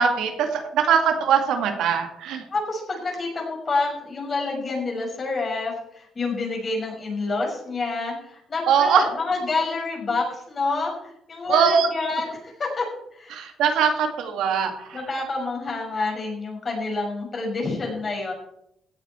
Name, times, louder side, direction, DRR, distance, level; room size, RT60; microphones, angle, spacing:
voice 1, 0.0-2.4 8.7-9.0 11.5-11.9 13.3-15.0, right 7 dB, 85° right, 5 dB, 2.0 m, -21 dB
voice 2, 2.5-13.4 14.9-18.3, left 3 dB, 40° left, -1 dB, 5.9 m, -28 dB
16.5 x 8.4 x 4.4 m, 0.77 s
cardioid pair, 90°, 0 cm